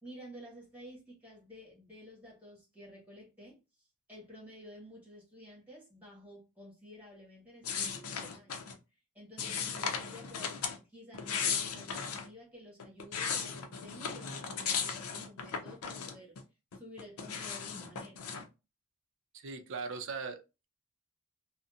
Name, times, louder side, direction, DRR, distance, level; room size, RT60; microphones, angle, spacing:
voice 1, 0.0-8.6 9.1-16.4 16.7-18.3, equal, 5° right, 1.5 m, -52 dB
sound 1, 7.6-8.8 9.4-10.8 11.1-12.3 12.8-16.4 16.7-18.5, left 6 dB, 85° left, 0.5 m, -36 dB
voice 2, 19.3-20.7, right 4 dB, 60° right, 0.5 m, -40 dB
2.7 x 2.1 x 2.4 m
head